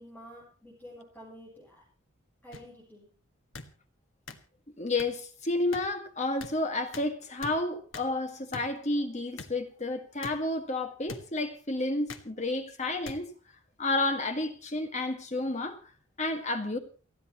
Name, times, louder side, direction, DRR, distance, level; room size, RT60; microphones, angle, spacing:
voice 1, 0.0-1.8 2.4-3.1, equal, 5° left, 7.4 m, -49 dB
sound 1, 2.5-2.6 3.5-3.7 4.3-4.4 5.0-5.1 5.7-5.8 6.4-6.5 6.9-7.1 7.4-7.5 7.9-8.1 8.5-8.7 9.4-9.5 10.2-10.3 11.1-11.2 12.1-12.3 13.0-13.2 14.0-14.2, left 3 dB, 75° left, 1.6 m, -41 dB
voice 2, 4.8-13.3 13.8-15.8 16.2-16.8, left 2 dB, 35° left, 1.8 m, -31 dB
29.5 x 10.5 x 3.0 m
head